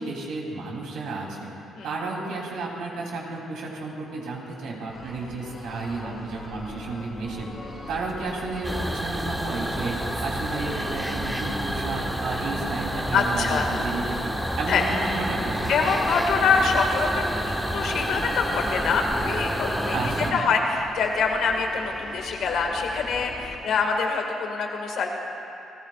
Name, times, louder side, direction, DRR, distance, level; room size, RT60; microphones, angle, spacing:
voice 1, 0.0-1.5 1.8-7.5 7.9-15.9 19.9-20.4, right 3 dB, 85° right, -2 dB, 3.2 m, -32 dB
sound 1, 4.9-23.6, left 2 dB, 40° left, 3.3 m, -41 dB
sound 2, 8.6-20.3, right 1 dB, 5° right, 1.4 m, -29 dB
voice 2, 13.1-13.7 14.7-14.8 15.7-25.2, left 5 dB, 75° left, 2 dB, 2.0 m, -25 dB
30.0 x 15.0 x 2.5 m, 2.8 s
cardioid pair, 90°, 0 cm